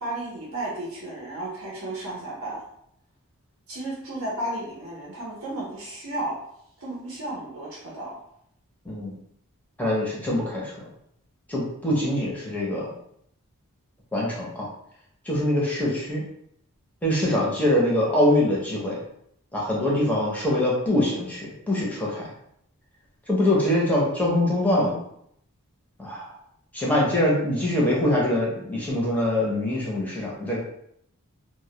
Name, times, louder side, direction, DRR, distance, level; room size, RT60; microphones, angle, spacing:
voice 1, 0.0-2.6 3.7-6.4 6.8-8.2, right 1 dB, 65° right, -5 dB, 0.6 m, -33 dB
voice 2, 9.8-10.8 11.5-12.9 14.1-14.7 15.2-16.3 17.0-19.0 19.5-22.3 23.3-25.0 26.0-26.3 26.7-30.6, left 1 dB, 5° left, -5 dB, 0.6 m, -24 dB
2.1 x 2.1 x 2.8 m, 0.72 s
head